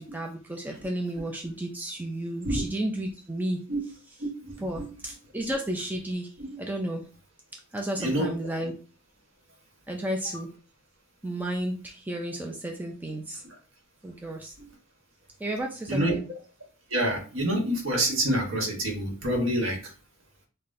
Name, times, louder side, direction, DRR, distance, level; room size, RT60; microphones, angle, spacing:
voice 1, 0.0-3.6 4.6-6.3 6.6-7.1 7.7-8.7 9.9-10.5 11.2-13.4 14.0-14.5 15.4-16.2, right 1 dB, 10° right, 1 dB, 0.4 m, -32 dB
voice 2, 4.2-4.9 8.0-8.3 14.6-14.7 15.9-16.2 16.9-19.8, right 1 dB, 65° right, 1 dB, 1.2 m, -27 dB
5.6 x 2.2 x 2.6 m, 0.36 s
head